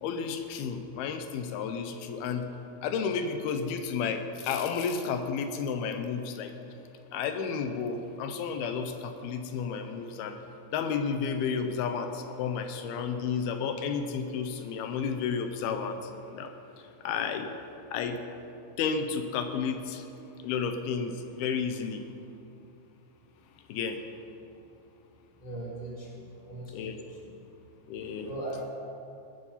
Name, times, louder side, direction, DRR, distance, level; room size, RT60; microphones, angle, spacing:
voice 1, 0.0-2.5 2.8-6.5 7.1-10.4 10.7-17.5 17.9-18.2 18.8-20.1 20.4-22.1 23.7-24.0 26.7-27.0 27.9-28.3, left 6 dB, 80° left, 7 dB, 2.6 m, -32 dB
voice 2, 25.4-27.0 28.2-28.6, right 2 dB, 15° right, -5 dB, 1.8 m, -39 dB
20.5 x 9.4 x 5.6 m, 2.7 s
omnidirectional pair, 4.5 m